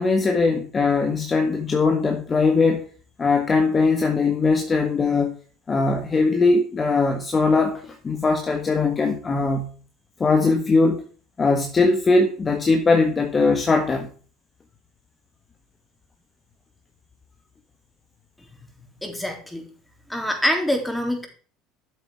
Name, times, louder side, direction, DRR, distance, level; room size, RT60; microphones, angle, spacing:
voice 1, 0.0-2.9 3.2-5.3 5.7-9.7 10.2-11.0 11.4-14.1, left 3 dB, 25° left, 1.5 m, -20 dB
voice 2, 19.0-19.7 20.1-21.3, equal, 5° left, 3.7 m, -25 dB
12.0 x 8.1 x 4.8 m
figure-of-eight pair, 65°, 0 cm